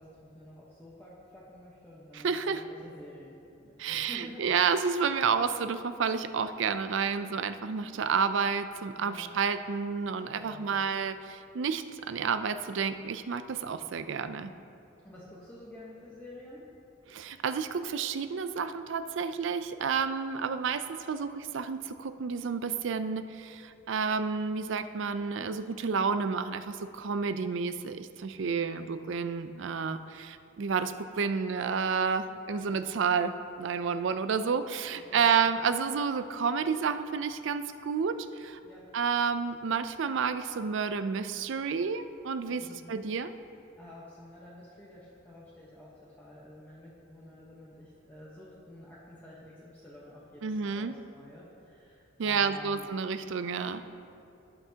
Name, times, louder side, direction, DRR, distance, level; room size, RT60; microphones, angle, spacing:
voice 1, 0.0-4.6 9.0-9.3 10.3-10.8 15.0-16.7 28.3-28.9 35.0-35.4 38.6-38.9 42.5-43.1 43.8-52.9, left 1 dB, 10° left, -7 dB, 0.9 m, -50 dB
voice 2, 2.1-2.6 3.8-14.5 17.1-33.3 33.6-38.6 38.9-43.4 50.4-50.9 52.2-53.8, right 6 dB, 65° right, 11 dB, 0.4 m, -30 dB
17.5 x 5.8 x 2.8 m, 2.6 s
head